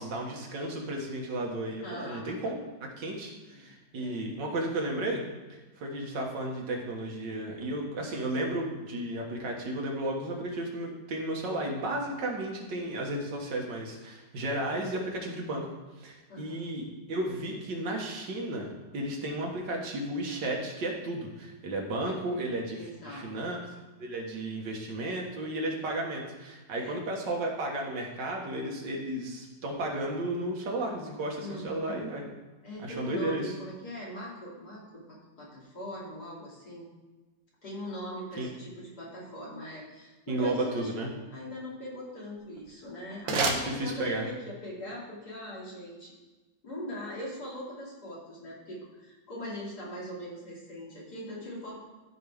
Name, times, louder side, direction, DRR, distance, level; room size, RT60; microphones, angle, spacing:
voice 1, 0.0-5.2 5.5-15.6 16.0-23.6 24.0-32.2 32.8-33.5 38.4-38.5 40.3-41.1 43.3-44.3, right 1 dB, 75° right, 0 dB, 2.1 m, -33 dB
voice 2, 1.7-2.3 3.5-4.3 16.3-16.6 22.0-22.2 22.8-23.5 26.7-27.0 31.4-31.9 32.6-35.0 35.4-36.9 37.6-46.1 46.6-51.8, equal, 55° left, -6 dB, 3.1 m, -41 dB
sound 1, 42.4-44.5, right 4 dB, 90° right, 1.8 m, -33 dB
13.5 x 5.4 x 3.5 m, 1.2 s
omnidirectional pair, 2.0 m